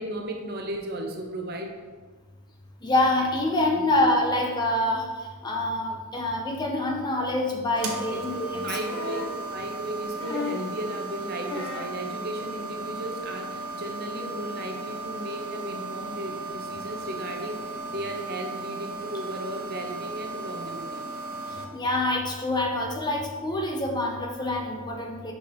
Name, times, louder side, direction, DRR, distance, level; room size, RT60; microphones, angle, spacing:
voice 1, 0.0-1.7 3.7-3.9 7.8-8.3 8.5-9.2 9.5-21.1, right 1 dB, 45° right, 3 dB, 0.7 m, -35 dB
voice 2, 2.8-5.1 5.4-8.7 21.7-25.3, left 1 dB, 20° left, 0 dB, 0.6 m, -26 dB
sound 1, 7.8-21.7, right 3 dB, 75° right, 0.9 m, -36 dB
sound 2, 8.8-9.4 10.2-10.7 11.5-12.0 13.2-13.3, left 3 dB, 65° left, 1.0 m, -34 dB
5.6 x 4.5 x 4.3 m, 1.4 s
head